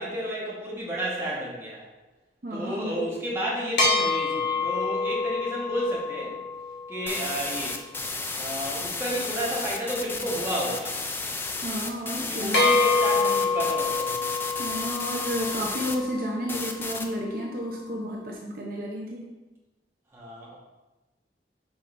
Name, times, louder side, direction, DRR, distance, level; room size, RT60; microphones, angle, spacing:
voice 1, 0.0-1.8 2.5-6.4 6.9-7.8 8.3-11.0 12.2-14.2 20.1-20.6, equal, 15° right, -6 dB, 1.4 m, -31 dB
voice 2, 2.4-3.1 11.6-12.8 14.6-19.3, equal, 55° right, -2 dB, 0.7 m, -32 dB
sound 1, 3.8-7.5 12.5-16.9, left 3 dB, 80° left, 1.5 m, -27 dB
sound 2, 7.1-15.9 16.5-17.1, left 3 dB, 15° left, 0.4 m, -33 dB
7.0 x 5.2 x 2.6 m, 1.1 s
head